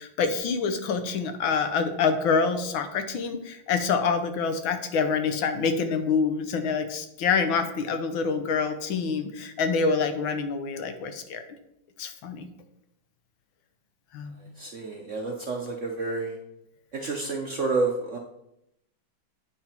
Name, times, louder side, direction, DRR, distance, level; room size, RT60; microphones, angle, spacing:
voice 1, 0.0-11.4 12.0-12.5 14.1-14.3, left 5 dB, 75° left, 8 dB, 1.6 m, -26 dB
voice 2, 14.6-16.4 16.9-18.2, right 3 dB, 60° right, 1 dB, 0.8 m, -29 dB
8.6 x 5.9 x 4.4 m, 0.81 s
omnidirectional pair, 2.2 m